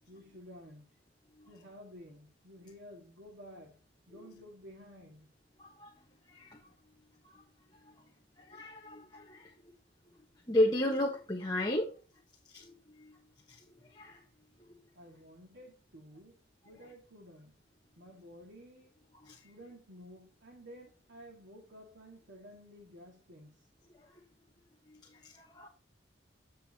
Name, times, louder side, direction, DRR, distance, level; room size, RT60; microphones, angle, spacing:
voice 1, 0.1-0.9 1.5-5.3 15.0-17.6 18.0-18.9 19.4-23.7, equal, 70° right, 2.1 m, -53 dB
voice 2, 5.6-5.9 6.3-6.6 7.3-7.4 8.4-9.5 10.5-11.9 12.5-13.2 13.5-14.2 19.2-19.4 24.9-25.7, left 1 dB, 20° left, 1.3 m, -34 dB
9.4 x 7.6 x 2.9 m
head